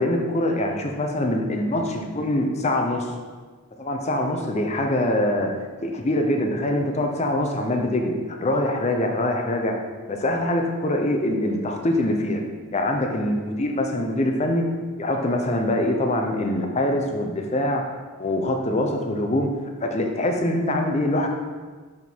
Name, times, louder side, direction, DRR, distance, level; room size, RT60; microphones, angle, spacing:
voice 1, 0.0-3.1 3.8-8.1 8.4-9.8 10.1-12.4 12.7-14.7 15.0-17.8 18.2-19.5 19.8-21.3, left 1 dB, 30° left, 3 dB, 0.6 m, -24 dB
6.2 x 3.7 x 4.5 m, 1.4 s
head